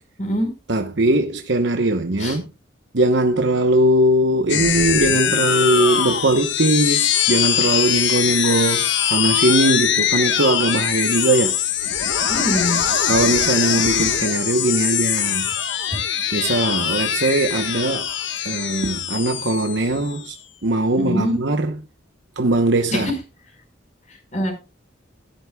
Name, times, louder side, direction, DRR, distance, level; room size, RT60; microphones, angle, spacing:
voice 1, 0.7-2.5 2.9-11.6 13.1-15.4 16.3-18.1 18.4-20.4 20.6-21.8 22.4-23.1, right 1 dB, 70° right, 1.0 m, -20 dB
sound 1, 4.5-20.3, left 9 dB, 75° left, 1.4 m, -22 dB
voice 2, 12.3-12.8 21.0-21.3 22.9-23.1 24.1-24.5, equal, 40° left, 4.8 m, -23 dB
17.5 x 11.5 x 2.3 m
head